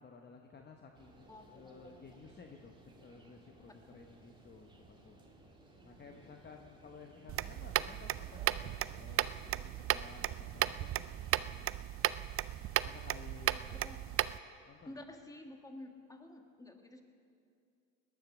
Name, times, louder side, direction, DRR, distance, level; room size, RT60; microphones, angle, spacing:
voice 1, 0.0-5.2 5.8-11.8 12.8-13.9 14.7-14.9, left 4 dB, 25° left, 3 dB, 1.0 m, -55 dB
sound 1, 0.9-11.5, right 2 dB, 10° right, 2.3 m, -60 dB
voice 2, 1.3-2.3 5.8-6.5 13.7-14.0 14.8-17.0, left 1 dB, 10° left, 4 dB, 1.7 m, -52 dB
sound 2, 7.3-14.4, right 13 dB, 35° right, 0.4 m, -35 dB
18.5 x 11.5 x 6.2 m, 2.4 s
supercardioid pair, 100°, 40 cm